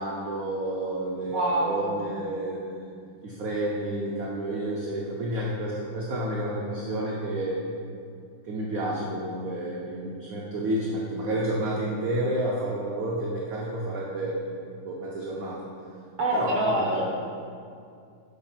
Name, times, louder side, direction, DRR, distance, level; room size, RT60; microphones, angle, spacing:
voice 1, 0.0-2.8 3.2-7.6 8.4-15.6 16.3-17.0, right 1 dB, 60° right, -3 dB, 0.9 m, -30 dB
voice 2, 1.3-2.1 16.2-17.0, right 1 dB, 30° right, -4 dB, 1.1 m, -25 dB
8.3 x 3.9 x 5.8 m, 2.4 s
omnidirectional pair, 2.3 m